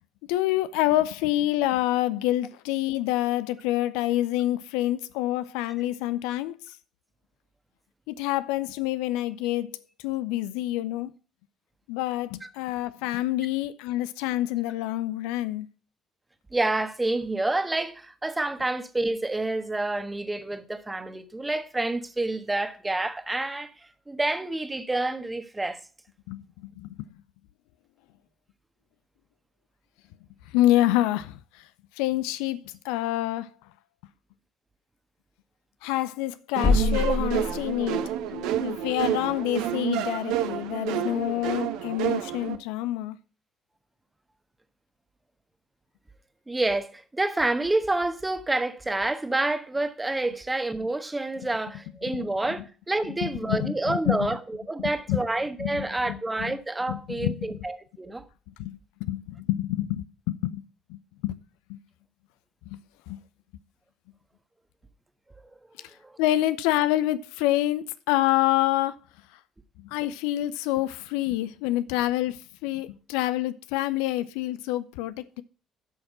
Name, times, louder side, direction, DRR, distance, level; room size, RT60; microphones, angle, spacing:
voice 1, 0.3-6.8 8.1-11.1 11.9-15.7 26.3-27.1 30.5-31.7 32.0-33.5 35.8-43.2 52.1-52.3 53.2-54.2 55.1-55.2 55.6-56.6 56.9-57.7 58.5-60.6 60.9-61.4 61.7-61.8 62.7-62.8 63.1-63.2 65.8-69.0 69.3-69.4 69.8-75.4, left 15 dB, 70° left, 0.5 m, -27 dB
voice 2, 16.5-23.7 24.1-25.8 46.5-58.2 66.0-66.2, right 2 dB, 15° right, 1.4 m, -28 dB
sound 1, 36.6-38.2, left 3 dB, 40° left, 2.2 m, -25 dB
sound 2, 36.6-42.6, right 11 dB, 65° right, 0.8 m, -29 dB
11.0 x 6.4 x 5.6 m
figure-of-eight pair, 50°, 0 cm